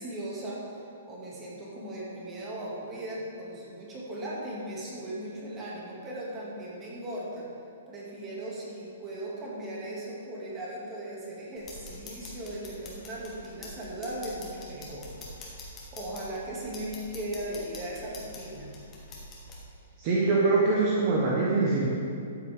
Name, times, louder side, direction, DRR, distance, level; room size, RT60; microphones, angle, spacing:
voice 1, 0.0-7.5 7.9-15.1 15.6-18.7, right 1 dB, 15° right, -6 dB, 2.2 m, -38 dB
sound 1, 11.6-19.6, left 2 dB, 20° left, 1.8 m, -45 dB
voice 2, 20.0-21.9, right 3 dB, 35° right, -4 dB, 1.2 m, -24 dB
12.5 x 7.3 x 3.6 m, 2.4 s
hypercardioid pair, 160°, 0 cm